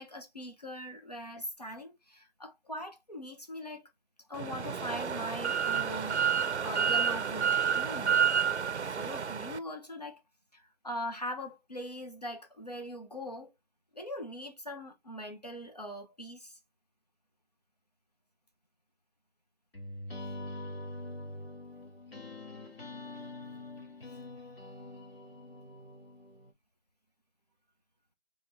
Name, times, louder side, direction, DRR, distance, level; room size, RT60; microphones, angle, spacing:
voice 1, 0.0-3.9 4.3-8.2 8.8-10.2 10.5-13.5 13.9-16.6, equal, 35° left, 0.8 m, -41 dB
sound 1, 4.3-9.6, right 7 dB, 70° right, 0.6 m, -29 dB
sound 2, 19.7-26.5, left 2 dB, 55° left, 1.7 m, -44 dB
3.6 x 3.1 x 4.0 m
figure-of-eight pair, 180°, 36 cm